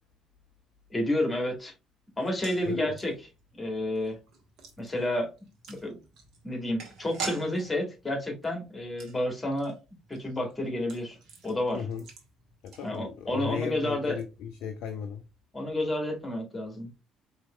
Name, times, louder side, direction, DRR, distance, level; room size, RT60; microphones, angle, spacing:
voice 1, 0.9-1.7 2.2-3.1 3.5-4.2 4.8-5.3 5.7-6.0 6.4-9.8 10.1-11.2 11.4-11.8 12.8-14.2 15.5-17.0, left 1 dB, 20° left, 2.1 m, -30 dB
sound 1, 2.2-13.4 13.6-13.7 14.0-14.2, right 5 dB, 55° right, 1.4 m, -46 dB
voice 2, 11.7-12.0 12.6-15.2, left 7 dB, 60° left, 0.5 m, -36 dB
4.7 x 3.2 x 3.2 m
figure-of-eight pair, 50°, 0 cm